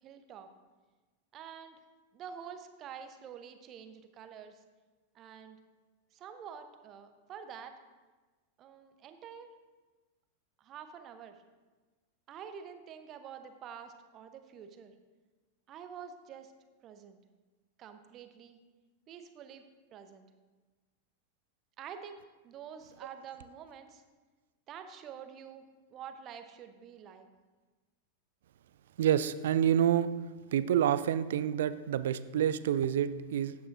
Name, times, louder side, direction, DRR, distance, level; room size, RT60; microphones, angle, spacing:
voice 1, 0.0-0.5 1.3-1.8 2.1-4.6 5.1-5.6 6.1-7.8 8.6-9.5 10.6-11.4 12.3-14.9 15.7-16.5 16.8-17.2 17.8-18.6 19.1-19.6 19.9-20.3 21.8-24.0 24.7-25.6 25.9-27.3, right 7 dB, 35° right, 8 dB, 0.8 m, -47 dB
voice 2, 29.0-30.1 30.5-33.6, right 10 dB, 60° right, 14 dB, 0.3 m, -28 dB
13.5 x 9.4 x 2.6 m, 1.3 s
figure-of-eight pair, 90°, 0 cm